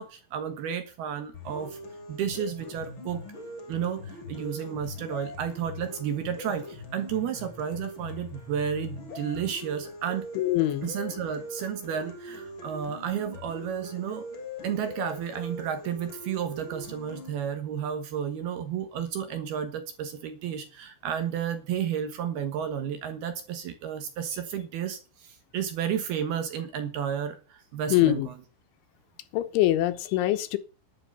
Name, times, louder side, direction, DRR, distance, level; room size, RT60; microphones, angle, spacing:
voice 1, 0.0-1.8 2.1-3.2 3.7-10.3 10.8-14.3 14.6-28.3, right 8 dB, 65° right, 2.8 m, -32 dB
sound 1, 1.3-17.3, left 2 dB, 30° left, 2.8 m, -41 dB
voice 2, 10.4-10.9 27.9-28.3 29.3-30.6, left 15 dB, 80° left, 3.3 m, -24 dB
11.5 x 10.5 x 6.8 m
omnidirectional pair, 5.7 m